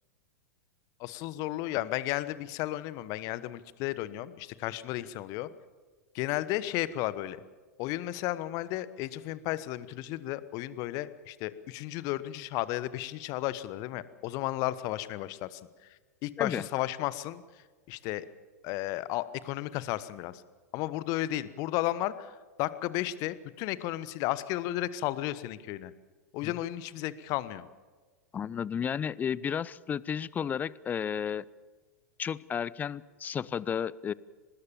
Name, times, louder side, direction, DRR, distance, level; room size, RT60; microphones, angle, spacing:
voice 1, 1.0-5.5 6.1-7.4 7.8-15.6 16.2-17.4 17.9-18.3 18.6-20.4 20.7-22.3 22.6-25.9 26.3-27.7, left 15 dB, 40° left, 16 dB, 1.2 m, -33 dB
voice 2, 28.3-31.4 32.2-34.1, left 8 dB, 20° left, 22 dB, 0.6 m, -32 dB
24.5 x 20.0 x 7.1 m, 1.4 s
figure-of-eight pair, 95°, 8 cm